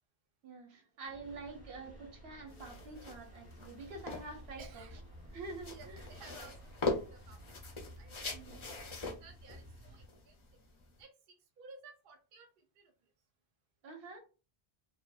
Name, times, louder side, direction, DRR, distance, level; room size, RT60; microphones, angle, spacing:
voice 1, 0.4-4.9 5.3-6.1 8.3-8.6 13.8-14.2, right 3 dB, 80° right, 3 dB, 1.0 m, -47 dB
sound 1, 1.0-7.6, right 1 dB, 15° right, 0.5 m, -57 dB
sound 2, 1.2-10.1, equal, 15° left, 0.8 m, -55 dB
sound 3, 2.5-11.0, left 3 dB, 40° left, 0.4 m, -42 dB
voice 2, 4.6-5.0 5.7-6.7 7.1-7.4 8.0-8.4 9.0-10.3 11.0-12.9, right 4 dB, 65° right, 5 dB, 0.7 m, -56 dB
2.7 x 2.1 x 2.3 m, 0.34 s
omnidirectional pair, 1.0 m